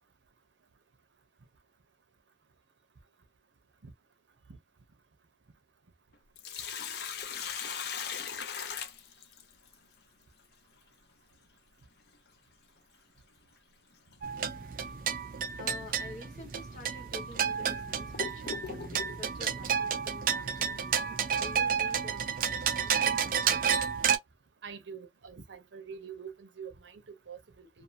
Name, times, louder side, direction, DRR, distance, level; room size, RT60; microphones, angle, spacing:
Sink (filling or washing), 6.1-9.7 12.1-12.2 14.1-14.3 14.8-14.9 15.7-15.9 16.5-16.6 17.3-19.2, left 7 dB, 60° left, 0.5 m, -39 dB
sound 1, 14.2-24.2, right 7 dB, 45° right, 0.4 m, -31 dB
voice 1, 15.6-23.6, left 3 dB, 40° left, 1.4 m, -49 dB
voice 2, 24.6-27.8, right 6 dB, 80° right, 0.7 m, -45 dB
2.6 x 2.5 x 2.5 m
head